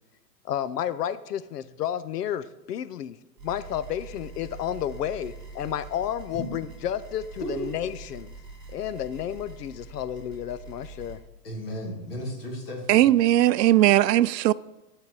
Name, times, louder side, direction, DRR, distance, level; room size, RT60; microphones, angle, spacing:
voice 1, 0.4-3.2 3.4-8.3 8.7-11.2, left 10 dB, 80° left, 0.7 m, -31 dB
sound 1, 3.4-11.2, right 3 dB, 10° right, 2.0 m, -44 dB
voice 2, 11.4-13.1, equal, 35° left, 2.2 m, -34 dB
voice 3, 12.9-14.5, right 14 dB, 85° right, 0.6 m, -19 dB
12.0 x 4.6 x 6.7 m
hypercardioid pair, 175°, 48 cm